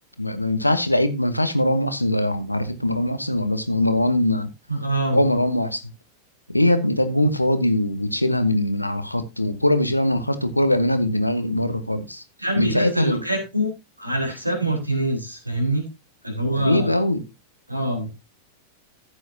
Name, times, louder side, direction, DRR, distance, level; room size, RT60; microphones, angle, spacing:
voice 1, 0.2-4.5 5.1-5.8 6.5-12.2 12.6-13.2 16.5-17.2, left 1 dB, 85° left, 1.3 m, -21 dB
voice 2, 4.7-5.2 12.4-13.7 14.0-15.8 16.2-17.0 17.7-18.1, right 1 dB, 90° right, 4.2 m, -25 dB
14.5 x 8.3 x 2.8 m
figure-of-eight pair, 90°, 0 cm